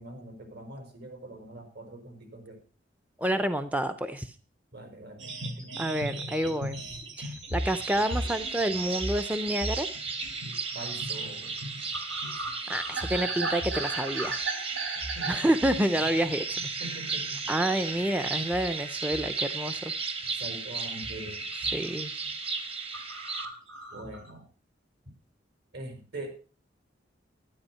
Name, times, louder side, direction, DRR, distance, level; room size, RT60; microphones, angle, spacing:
voice 1, 0.0-2.6 4.7-5.7 10.7-11.5 15.1-15.4 16.8-17.4 20.3-21.4 23.9-24.5 25.7-26.3, right 1 dB, 65° right, 4 dB, 5.2 m, -43 dB
voice 2, 3.2-4.3 5.8-6.8 7.2-9.9 12.7-14.5 15.3-16.6 17.5-19.9 21.7-22.1, right 1 dB, 10° right, 9 dB, 0.7 m, -28 dB
sound 1, 5.2-16.9 17.2-17.5 17.9-19.4 19.7-20.5 21.0-21.3 21.5-21.9 22.2-22.3 22.6-22.7 22.9-24.3, right 2 dB, 90° right, 3.9 m, -37 dB
sound 2, 7.6-23.4, right 4 dB, 30° right, 1.4 m, -35 dB
12.0 x 11.0 x 5.6 m, 0.37 s
head